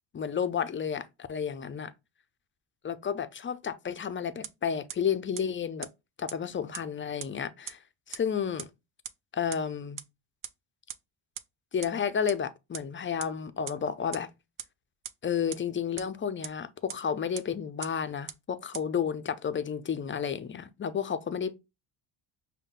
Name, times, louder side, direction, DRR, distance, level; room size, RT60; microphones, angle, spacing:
voice 1, 0.1-1.9 2.8-5.9 6.2-7.8 8.1-8.7 9.3-10.0 11.7-14.3 15.2-21.6, left 7 dB, 25° left, 0.4 m, -31 dB
sound 1, 4.4-4.5 4.9-5.0 5.4-5.5 5.8-5.9 6.3-6.4 6.7-6.8 7.2-7.3 7.7-7.8 8.1-8.2 8.6-8.7 9.0-9.1 9.5-9.6 10.0-10.1 10.4-10.5 10.9-11.0 11.4-11.5 11.8-11.9 12.3-12.4 12.7-12.8 13.2-13.3 13.7-13.8 14.1-14.2 14.6-14.7 15.0-15.1 15.5-15.6 16.0-16.1 16.4-16.5 16.9-17.0 17.4-17.5 17.8-17.9 18.3-18.4 18.7-18.8, right 9 dB, 40° right, 0.6 m, -37 dB
5.4 x 2.2 x 3.7 m
cardioid pair, 95°, 49 cm